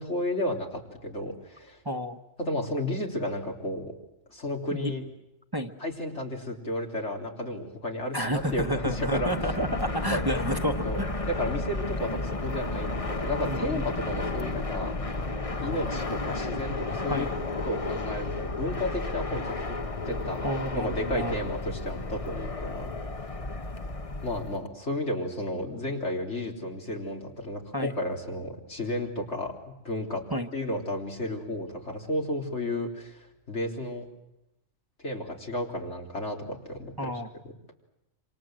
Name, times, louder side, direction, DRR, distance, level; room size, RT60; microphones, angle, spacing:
voice 1, 0.0-1.8 2.4-3.9 4.3-5.0 5.8-9.3 10.0-10.2 10.8-14.9 15.6-17.3 17.6-19.8 20.1-20.5 20.7-22.9 24.2-30.2 30.5-34.0 35.0-37.1, left 1 dB, 75° left, 0 dB, 3.9 m, -32 dB
voice 2, 1.8-2.2 4.7-4.9 5.5-5.7 8.1-11.2 13.4-13.8 17.1-17.3 20.4-21.3 27.7-27.9 30.3-30.5 37.0-37.3, equal, 20° right, 6 dB, 1.2 m, -30 dB
Fixed-wing aircraft airplane, 8.3-24.6, left 2 dB, 30° left, 1.1 m, -32 dB
27.5 x 27.0 x 7.7 m, 0.89 s
omnidirectional pair, 1.2 m